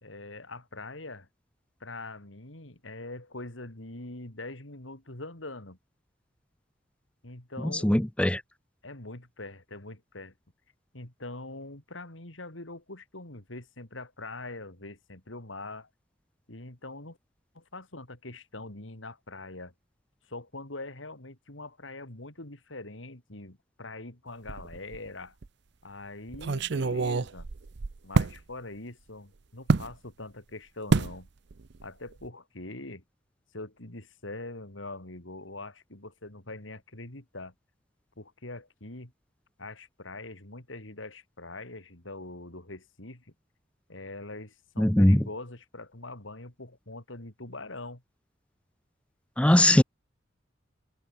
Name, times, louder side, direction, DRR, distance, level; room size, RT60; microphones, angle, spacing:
voice 1, 0.0-1.3 1.8-5.8 7.2-7.9 8.8-10.3 10.9-15.9 16.5-17.2 17.5-19.7 20.2-25.4 25.8-27.5 28.0-31.3 31.8-33.0 33.5-37.5 38.2-39.1 39.6-43.3 43.9-48.0, left 2 dB, 90° left, 4.1 m, -43 dB
voice 2, 7.7-8.4 44.8-45.2 49.4-49.8, left 1 dB, 5° left, 0.5 m, -20 dB
sound 1, 24.5-25.1 25.4-25.5 26.3-28.4 29.7-29.9 30.9-31.2 31.5-31.8 32.1-32.3, right 3 dB, 60° right, 0.6 m, -27 dB
head